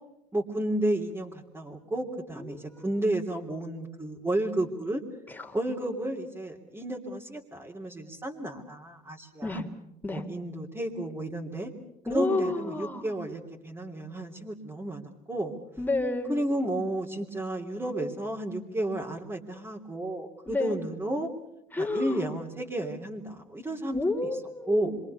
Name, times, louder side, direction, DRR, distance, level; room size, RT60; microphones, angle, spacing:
voice 1, 0.3-5.0 5.5-9.6 10.1-11.7 12.1-15.5 16.3-21.3 21.8-24.0 24.7-24.9, right 1 dB, 15° right, -3 dB, 3.3 m, -32 dB
voice 2, 2.4-3.0 5.3-5.6 9.4-9.7 10.0-10.3 12.1-13.1 15.8-16.4 20.5-20.8 21.7-22.3 23.9-25.0, left 2 dB, 10° left, 3 dB, 3.7 m, -31 dB
26.5 x 24.5 x 7.0 m, 0.85 s
cardioid pair, 110°, 17 cm